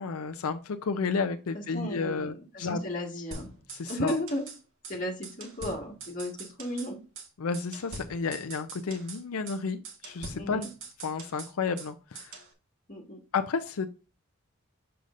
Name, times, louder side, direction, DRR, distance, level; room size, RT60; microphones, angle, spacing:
voice 1, 0.0-2.8 3.7-4.2 7.4-10.6 11.0-12.4 13.3-13.9, left 5 dB, 90° left, 7 dB, 0.5 m, -32 dB
voice 2, 1.5-3.5 3.9-4.5 4.9-7.0 10.3-10.7 12.9-13.2, left 1 dB, 40° left, -1 dB, 1.8 m, -34 dB
sound 1, 3.3-4.6 4.8-5.0 5.2-6.9 7.2-7.3 7.5-9.2 9.5-9.6 9.8-11.9 12.1-12.5, right 3 dB, 70° right, 1.6 m, -43 dB
6.7 x 6.4 x 2.6 m, 0.33 s
head